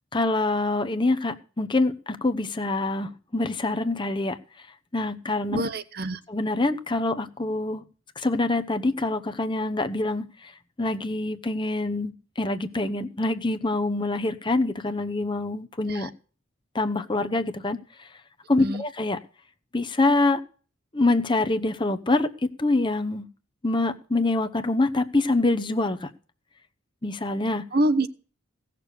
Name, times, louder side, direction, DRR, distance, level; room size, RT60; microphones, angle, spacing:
voice 1, 0.1-4.4 4.9-5.6 6.3-7.8 8.2-10.5 10.8-16.1 16.7-18.1 18.5-19.2 19.7-20.4 20.9-23.3 23.6-26.1 27.0-27.6, left 2 dB, 25° left, 9 dB, 0.8 m, -25 dB
voice 2, 5.5-6.2 15.9-16.1 18.6-18.8 27.7-28.1, right 1 dB, 50° right, 12 dB, 0.9 m, -25 dB
17.0 x 6.8 x 6.6 m, 0.39 s
head